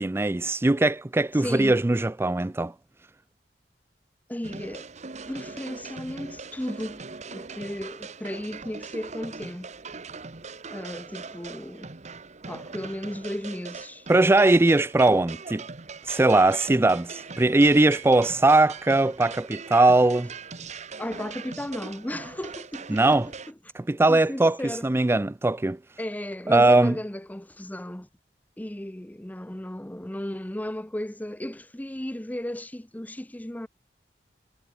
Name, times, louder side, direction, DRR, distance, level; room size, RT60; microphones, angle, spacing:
voice 1, 0.0-2.7 14.1-15.6 16.0-20.3 22.9-23.3 23.7-25.8 26.5-26.9, right 2 dB, 15° right, 0.4 m, -20 dB
voice 2, 1.3-1.8 4.3-4.9 5.3-7.0 7.3-9.7 10.7-11.9 12.5-14.1 21.0-23.1 24.1-24.8 26.0-28.1 28.6-33.7, left 1 dB, 10° left, 0.7 m, -35 dB
sound 1, 4.4-23.5, right 4 dB, 40° right, 1.2 m, -41 dB
head